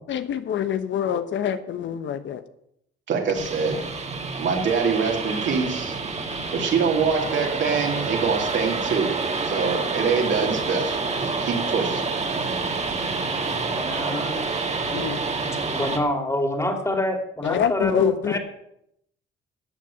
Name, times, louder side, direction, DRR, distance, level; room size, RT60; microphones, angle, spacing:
voice 1, 0.1-2.4 14.9-15.2 17.4-18.4, left 8 dB, 70° left, 11 dB, 1.1 m, -25 dB
voice 2, 3.1-3.8 4.4-6.0 6.5-9.2 9.4-12.0, right 5 dB, 70° right, 1 dB, 3.4 m, -24 dB
sound 1, 3.3-16.0, right 4 dB, 35° right, 2.1 m, -28 dB
voice 3, 13.5-14.4 15.4-18.4, left 1 dB, 15° left, 5 dB, 2.9 m, -27 dB
13.0 x 6.6 x 8.8 m, 0.75 s
cardioid pair, 90°, 20 cm